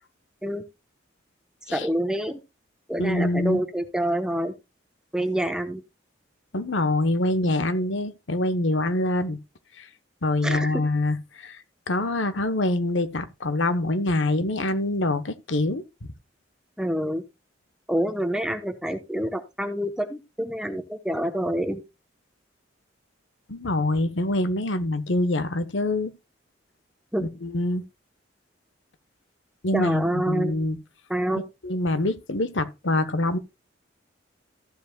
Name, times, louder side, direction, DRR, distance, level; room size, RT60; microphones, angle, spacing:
voice 1, 1.7-2.4 2.9-4.5 5.1-5.8 10.4-10.8 16.8-17.2 17.9-21.8 27.1-27.3 29.7-30.6 31.1-31.4, right 1 dB, 5° right, 1.0 m, -27 dB
voice 2, 3.0-3.6 6.5-9.4 9.8-9.9 10.2-11.6 11.9-15.8 23.5-26.1 27.2-27.8 29.6-30.8 31.4-33.4, left 2 dB, 75° left, 1.1 m, -25 dB
14.5 x 7.9 x 2.3 m
head